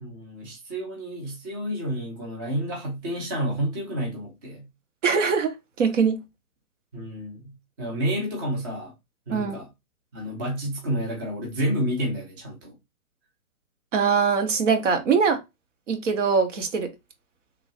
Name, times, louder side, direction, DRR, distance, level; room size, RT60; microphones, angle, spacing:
voice 1, 0.0-4.6 6.9-7.5 7.8-8.9 9.3-9.7 10.1-12.7, equal, 15° right, 0.4 m, -30 dB
voice 2, 5.0-6.2 9.3-9.6 13.9-15.4 15.9-16.9, right 5 dB, 55° right, 0.9 m, -22 dB
3.1 x 2.6 x 2.6 m
figure-of-eight pair, 125°, 44 cm